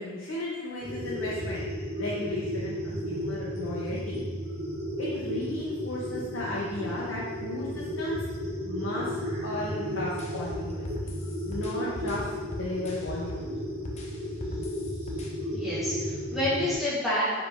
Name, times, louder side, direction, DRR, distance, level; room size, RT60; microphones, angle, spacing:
voice 1, 0.0-1.6 2.0-4.2 5.0-8.2 8.6-9.2 9.4-11.1 11.4-13.5, left 1 dB, 65° left, -7 dB, 0.8 m, -35 dB
sound 1, 0.8-16.7, equal, 35° right, 1.0 m, -34 dB
sound 2, 10.2-13.5 13.9-15.3, left 2 dB, 30° left, 0.5 m, -40 dB
voice 2, 15.5-17.4, left 1 dB, ahead, -10 dB, 1.3 m, -29 dB
4.1 x 3.4 x 3.4 m, 1.3 s
head